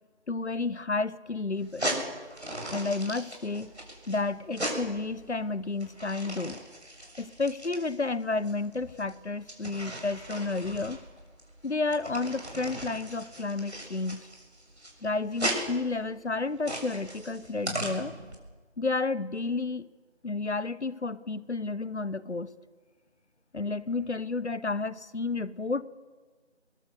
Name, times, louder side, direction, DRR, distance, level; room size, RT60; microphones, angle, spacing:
voice 1, 0.3-1.9 2.7-3.7 4.1-6.6 7.2-11.0 11.6-14.3 15.0-18.1 18.8-19.9 20.2-22.5 23.5-25.8, left 3 dB, 70° left, 18 dB, 1.0 m, -31 dB
sound 1, 1.6-18.3, right 1 dB, 70° right, 6.9 m, -37 dB
23.0 x 21.0 x 6.9 m, 1.4 s
figure-of-eight pair, 170°, 35 cm